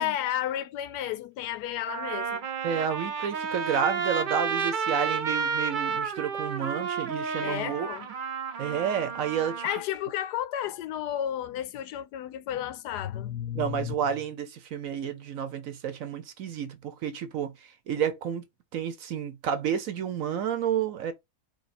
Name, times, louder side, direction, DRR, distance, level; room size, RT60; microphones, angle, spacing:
voice 1, 0.0-2.5 7.4-8.1 9.6-13.9, left 11 dB, 85° left, 1.2 m, -32 dB
Trumpet, 1.1-1.2 1.9-9.8, right 5 dB, 45° right, 0.6 m, -31 dB
voice 2, 2.6-7.9 8.6-9.6 13.5-17.5 17.9-18.4 18.7-21.1, right 8 dB, 60° right, 1.1 m, -30 dB
4.7 x 2.3 x 4.2 m
omnidirectional pair, 1.7 m